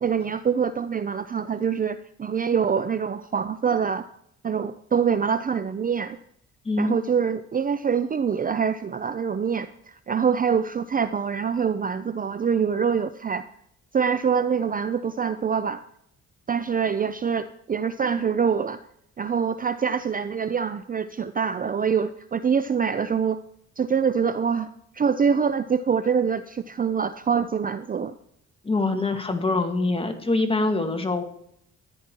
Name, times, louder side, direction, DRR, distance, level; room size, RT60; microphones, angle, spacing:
voice 1, 0.0-4.1 4.4-6.2 6.8-13.4 13.9-15.8 16.5-18.8 19.2-23.4 23.8-24.7 24.9-28.1, right 6 dB, 30° right, 13 dB, 0.5 m, -25 dB
voice 2, 6.7-7.0 28.6-31.2, left 3 dB, 20° left, 5 dB, 2.0 m, -24 dB
14.0 x 10.0 x 4.6 m, 0.71 s
cardioid pair, 90°, 30 cm